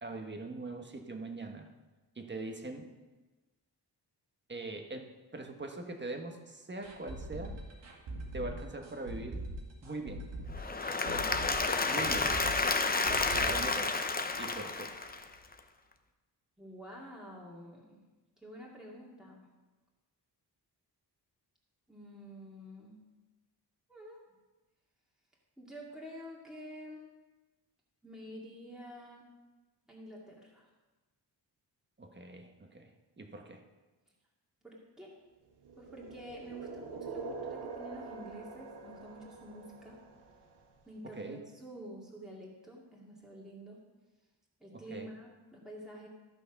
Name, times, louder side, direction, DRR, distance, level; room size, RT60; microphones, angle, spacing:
voice 1, 0.0-1.7 2.1-2.9 4.5-7.6 8.3-9.4 9.8-10.3 11.9-12.3 13.3-14.0 14.4-14.9 32.0-33.6 41.0-41.4 44.7-45.1, right 2 dB, 25° right, 4 dB, 1.3 m, -42 dB
sound 1, 6.8-14.6 14.8-14.9 15.3-15.4, right 1 dB, 85° right, 2.1 m, -42 dB
Applause / Crowd, 10.5-15.5, left 3 dB, 20° left, 0.8 m, -31 dB
voice 2, 11.1-11.6 16.6-18.0 18.4-19.5 21.9-23.0 23.9-24.2 25.6-27.0 28.0-29.3 29.9-30.7 34.6-35.1 35.8-40.0 40.8-43.8 44.6-46.1, equal, ahead, -4 dB, 2.3 m, -48 dB
sound 2, 35.6-40.6, right 4 dB, 70° right, 1.4 m, -45 dB
13.5 x 6.2 x 5.9 m, 1.2 s
wide cardioid pair, 115°, 42 cm